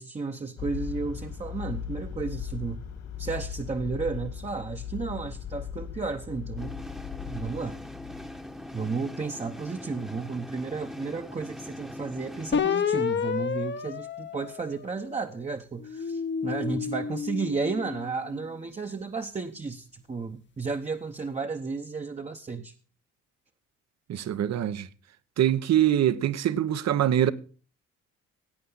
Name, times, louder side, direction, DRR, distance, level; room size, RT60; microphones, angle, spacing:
voice 1, 0.0-2.8 3.2-6.8 7.3-7.8 8.7-22.7, right 4 dB, 20° right, 0.9 m, -33 dB
sound 1, 0.6-8.9, left 8 dB, 65° left, 2.4 m, -38 dB
sound 2, 6.6-12.5, left 1 dB, ahead, 1.0 m, -41 dB
sound 3, 12.5-15.2 15.8-18.3, left 7 dB, 40° left, 0.9 m, -30 dB
voice 2, 24.1-24.9 25.4-27.3, right 11 dB, 60° right, 0.9 m, -24 dB
17.0 x 8.5 x 4.0 m
cardioid pair, 90°, 30 cm